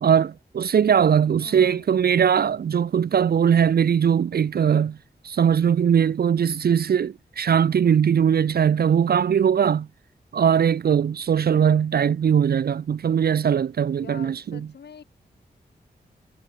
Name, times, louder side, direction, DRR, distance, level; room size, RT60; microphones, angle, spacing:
voice 1, 0.0-5.0 5.2-9.9 10.3-14.6, right 8 dB, 65° right, 0.6 m, -20 dB
voice 2, 1.3-1.9 14.0-15.0, left 6 dB, 75° left, 3.1 m, -44 dB
wide cardioid pair, 80°, 17 cm